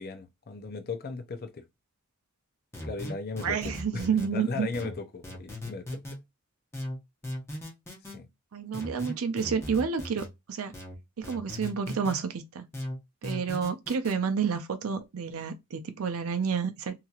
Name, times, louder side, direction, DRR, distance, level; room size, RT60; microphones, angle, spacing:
voice 1, 0.0-1.6 2.8-6.2 8.1-8.3, left 4 dB, 45° left, 0.5 m, -37 dB
sound 1, 2.7-4.3 4.7-6.2 6.7-8.2 8.7-10.3 10.7-12.2 12.7-14.2, left 1 dB, 10° left, 1.0 m, -38 dB
voice 2, 3.4-4.7 8.5-10.7 11.2-12.6 13.2-16.9, right 6 dB, 75° right, 0.5 m, -30 dB
2.9 x 2.8 x 2.4 m
head